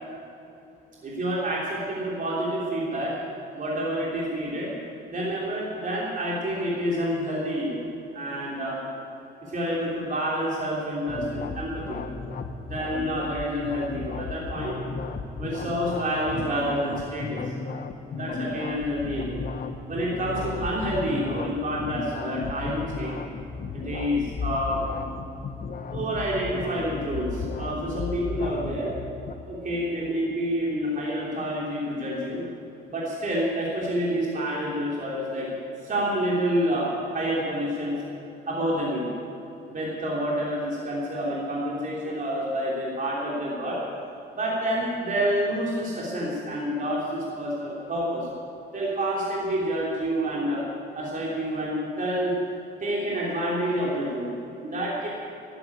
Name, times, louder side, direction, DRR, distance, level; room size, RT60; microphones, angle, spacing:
voice 1, 1.0-3.1 3.5-4.7 5.1-7.8 8.1-8.8 9.4-12.0 12.6-14.7 15.4-17.5 18.1-19.4 19.9-23.2 23.7-24.8 25.9-28.9 29.4-32.4 32.9-35.5 35.8-36.9 37.1-38.0 38.5-39.1 39.7-43.8 44.3-48.3 48.7-50.6 50.9-52.3 52.8-54.3 54.6-55.1, equal, 40° right, -5 dB, 3.2 m, -28 dB
sound 1, 11.1-29.4, left 4 dB, 45° left, 1.0 m, -34 dB
12.0 x 10.5 x 8.5 m, 2.9 s
cardioid pair, 90°, 20 cm